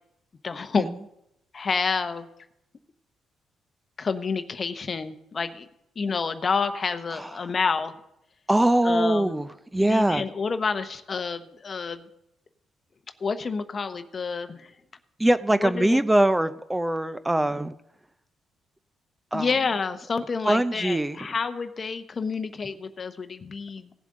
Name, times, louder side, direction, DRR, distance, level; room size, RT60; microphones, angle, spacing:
voice 1, 0.4-0.9 1.5-2.3 4.0-5.7 6.0-7.9 8.8-9.4 9.9-12.1 13.2-14.7 15.6-16.0 19.3-23.9, left 5 dB, 40° left, 10 dB, 0.8 m, -29 dB
voice 2, 7.1-7.5 8.5-10.3 15.2-17.7 19.3-19.5 20.4-21.3, right 1 dB, 10° right, 13 dB, 0.6 m, -23 dB
17.5 x 7.6 x 3.7 m, 0.82 s
cardioid pair, 90°, 0 cm